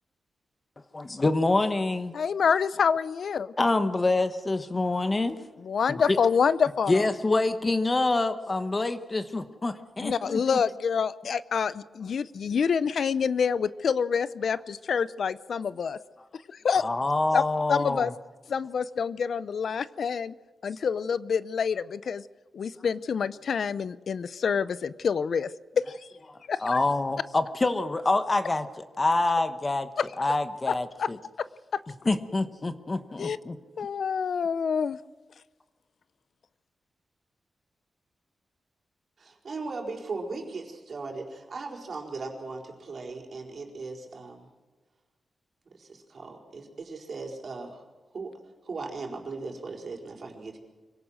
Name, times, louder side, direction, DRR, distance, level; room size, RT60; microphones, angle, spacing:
voice 1, 0.9-2.1 3.6-5.4 5.9-6.2 6.9-10.4 16.8-18.1 26.6-28.7 29.0-29.9 30.2-31.2 32.0-33.6, left 2 dB, 25° left, 10 dB, 1.2 m, -26 dB
voice 2, 2.1-3.5 5.6-7.0 10.0-16.0 16.5-16.8 17.3-17.4 17.7-18.1 18.5-20.3 20.6-22.2 22.5-25.5 25.8-25.9 26.5-26.8 30.0-30.1 30.7-30.8 31.0-31.1 31.7-31.8 33.2-33.4 33.8-35.0, left 6 dB, 70° left, 16 dB, 0.6 m, -27 dB
voice 3, 39.2-44.5 45.7-47.9 48.1-50.6, right 3 dB, 50° right, 2 dB, 4.5 m, -38 dB
24.5 x 17.5 x 6.4 m, 1.3 s
wide cardioid pair, 110°, 0 cm